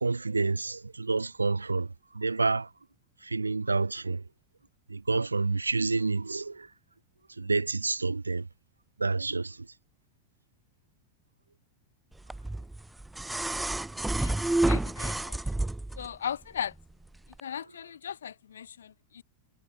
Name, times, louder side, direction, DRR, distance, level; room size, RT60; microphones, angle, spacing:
voice 1, 0.0-1.9 2.2-2.7 3.3-4.2 4.9-6.7 7.4-8.4 9.0-9.6, right 3 dB, 80° right, 0.5 m, -28 dB
sound 1, 12.3-16.1 17.3-17.4, right 2 dB, 5° right, 0.7 m, -29 dB
voice 2, 14.7-15.4 16.0-16.7 17.4-19.2, left 8 dB, 65° left, 2.1 m, -37 dB
figure-of-eight pair, 90°, 0 cm